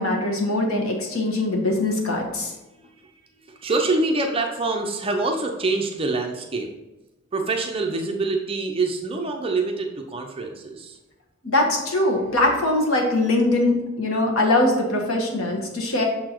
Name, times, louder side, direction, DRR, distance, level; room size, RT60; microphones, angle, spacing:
voice 1, 0.0-2.5 11.4-16.0, left 2 dB, 85° left, 0 dB, 1.4 m, -22 dB
voice 2, 3.5-6.7 7.3-11.0, right 3 dB, 25° right, 2 dB, 0.6 m, -25 dB
6.5 x 4.2 x 4.5 m, 1.1 s
head